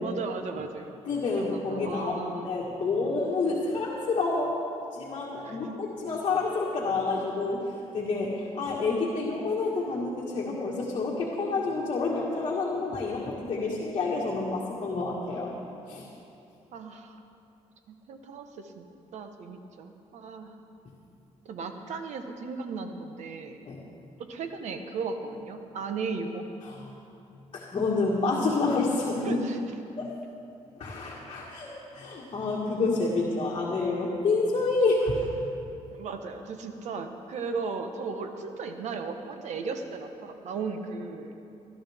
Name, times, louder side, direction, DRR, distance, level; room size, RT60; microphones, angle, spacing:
voice 1, 0.0-0.9 1.4-2.5 5.4-5.7 16.7-17.2 17.9-18.9 19.1-20.6 21.4-23.6 24.2-26.5 29.2-29.6 35.9-41.3, right 4 dB, 70° right, 6 dB, 1.2 m, -36 dB
voice 2, 1.0-4.6 4.9-15.5 15.9-16.1 23.6-23.8 26.6-26.9 27.5-29.4 30.0-30.1 30.8-35.3, left 3 dB, 45° left, -4 dB, 1.8 m, -28 dB
18.5 x 13.0 x 3.6 m, 2.7 s
cardioid pair, 105°, 12 cm